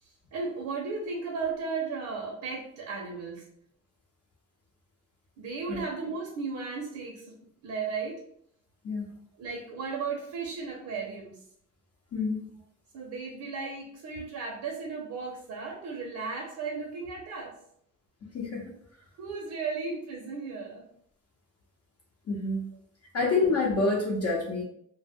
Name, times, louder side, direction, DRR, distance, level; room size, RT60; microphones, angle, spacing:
voice 1, 0.0-3.4 5.4-7.3 7.6-8.2 9.3-11.4 12.9-17.5 19.2-20.8 23.2-23.4, right 4 dB, 70° right, -1 dB, 0.6 m, -35 dB
voice 2, 12.1-12.5 18.3-18.7 22.3-22.7 23.1-24.6, left 3 dB, 55° left, -4 dB, 0.7 m, -27 dB
2.1 x 2.1 x 3.4 m, 0.70 s
cardioid pair, 90°, 30 cm